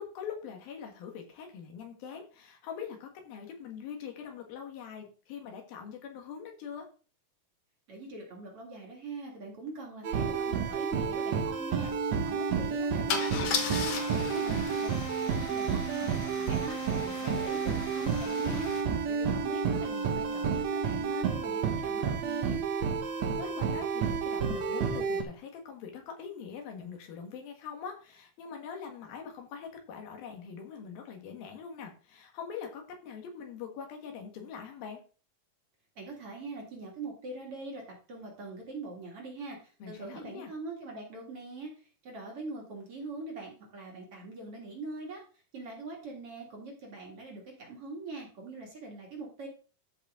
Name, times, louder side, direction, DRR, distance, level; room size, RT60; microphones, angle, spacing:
voice 1, 0.0-6.9 14.1-14.7 23.4-35.0 39.8-40.5, left 7 dB, 85° left, 3 dB, 3.5 m, -43 dB
voice 2, 7.9-11.9 12.2-14.0 14.3-14.9 15.4-18.7 19.1-22.6 36.0-41.7 42.0-45.2 45.5-49.5, right 3 dB, 45° right, -1 dB, 2.8 m, -42 dB
sound 1, 10.0-25.2, right 6 dB, 60° right, 2.2 m, -30 dB
Car / Engine starting / Idling, 10.5-10.6 10.8-11.1 13.1-18.8, left 6 dB, 60° left, 1.7 m, -37 dB
13.5 x 5.3 x 3.7 m, 0.38 s
omnidirectional pair, 4.1 m